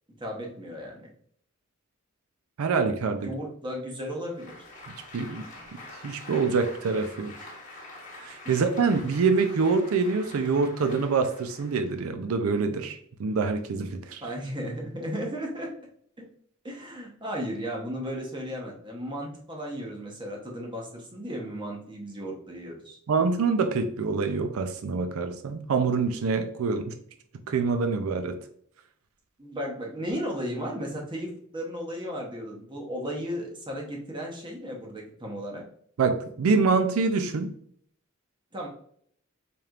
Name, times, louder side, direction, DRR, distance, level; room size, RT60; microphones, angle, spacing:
voice 1, 0.2-1.1 3.1-4.5 8.4-8.6 14.2-15.7 16.6-23.0 29.4-35.6 38.5-38.7, equal, 25° right, -1 dB, 0.9 m, -35 dB
voice 2, 2.6-3.3 5.1-5.4 6.0-7.3 8.2-14.2 23.1-26.9 27.5-28.4 36.0-37.5, right 4 dB, 90° right, 7 dB, 0.4 m, -25 dB
Applause, 4.2-12.0, left 2 dB, 40° left, 1.1 m, -46 dB
4.3 x 3.3 x 2.4 m, 0.64 s
head